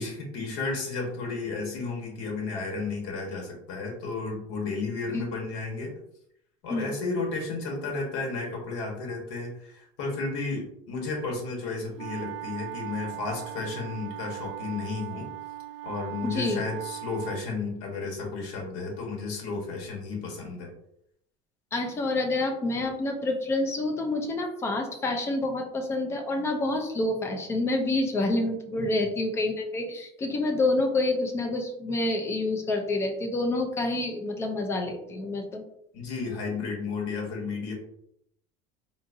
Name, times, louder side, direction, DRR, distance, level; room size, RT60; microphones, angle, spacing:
voice 1, 0.0-5.9 6.6-15.3 15.8-20.7 28.8-28.9 35.9-37.7, left 3 dB, 75° left, 0 dB, 1.2 m, -33 dB
sound 1, 12.0-17.5, right 15 dB, 45° right, 0.4 m, -39 dB
voice 2, 16.2-16.6 21.7-35.6, left 2 dB, 15° left, 3 dB, 0.4 m, -28 dB
3.8 x 2.5 x 2.6 m, 0.75 s
cardioid pair, 165°, 16 cm